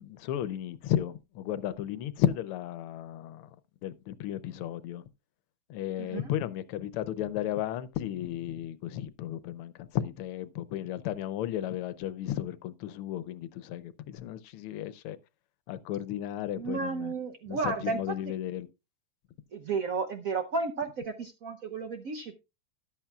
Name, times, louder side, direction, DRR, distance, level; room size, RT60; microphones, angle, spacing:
voice 1, 0.0-3.5 3.8-5.0 5.7-15.2 15.7-17.1 17.5-18.7, left 12 dB, 90° left, 1.6 m, -34 dB
voice 2, 6.0-6.3 16.6-18.0 18.3-18.4 19.5-22.3, right 4 dB, 65° right, 0.8 m, -33 dB
13.0 x 10.5 x 2.3 m
omnidirectional pair, 2.4 m